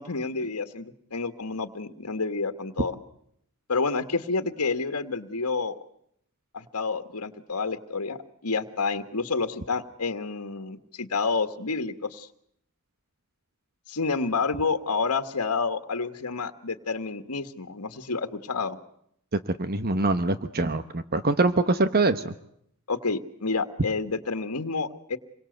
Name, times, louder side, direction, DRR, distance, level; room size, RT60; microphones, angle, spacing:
voice 1, 0.0-3.0 3.7-5.8 6.5-12.3 13.9-18.8 22.9-25.2, left 4 dB, 90° left, 8 dB, 1.7 m, -29 dB
voice 2, 19.5-22.3, right 2 dB, 45° right, 11 dB, 1.1 m, -24 dB
27.5 x 23.5 x 8.0 m, 0.72 s
head